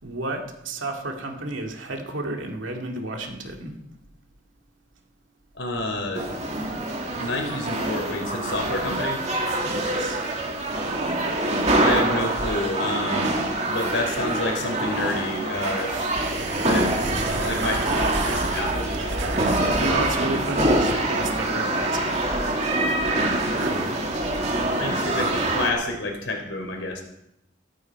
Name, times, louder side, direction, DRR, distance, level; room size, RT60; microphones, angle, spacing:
voice 1, 0.0-3.8 9.6-10.2 15.9-16.4 19.7-22.2 23.5-24.1 24.9-25.3, right 2 dB, 85° right, 2 dB, 2.2 m, -32 dB
voice 2, 5.6-6.3 7.1-9.2 11.8-13.4 13.7-15.9 16.5-16.9 17.3-19.9 22.5-23.0 24.8-27.0, left 2 dB, 75° left, 3 dB, 3.7 m, -29 dB
sound 1, 6.1-25.7, right 1 dB, 35° right, 2.3 m, -25 dB
sound 2, 15.8-21.4, right 2 dB, 65° right, 1.9 m, -30 dB
15.0 x 14.0 x 4.6 m, 0.85 s
head